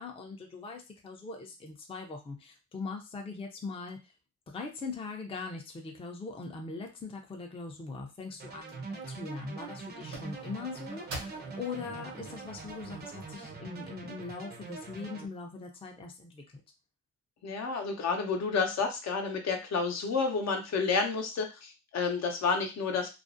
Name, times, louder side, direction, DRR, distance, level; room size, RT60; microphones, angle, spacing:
voice 1, 0.0-4.1 4.5-16.4, left 4 dB, 20° left, 3 dB, 0.5 m, -41 dB
sound 1, 7.6-7.9 8.7-8.8 9.1-9.7 10.1-13.4, right 2 dB, 75° right, 0.8 m, -47 dB
sound 2, 8.4-15.3, right 4 dB, 35° right, 0.5 m, -43 dB
voice 2, 17.4-23.1, left 4 dB, 60° left, 4 dB, 0.7 m, -30 dB
2.4 x 2.0 x 2.5 m, 0.27 s
cardioid pair, 90°, 30 cm